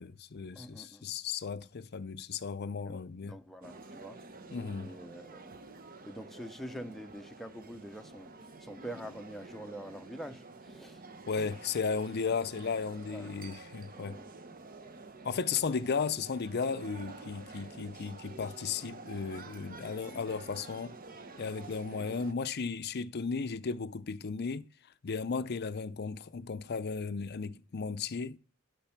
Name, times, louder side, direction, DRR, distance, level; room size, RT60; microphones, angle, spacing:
voice 1, 0.0-3.4 4.5-4.9 11.3-14.2 15.2-21.0 21.4-24.7 25.0-28.4, left 5 dB, 50° left, 0.5 m, -35 dB
voice 2, 0.5-1.1 2.8-4.2 4.8-5.6 6.0-8.3 8.6-11.0 11.3-11.6 13.1-13.3 14.0-14.3 15.5-15.7, equal, ahead, 0.7 m, -46 dB
sound 1, 3.6-22.3, right 3 dB, 45° right, 1.1 m, -49 dB
12.0 x 5.3 x 5.9 m
head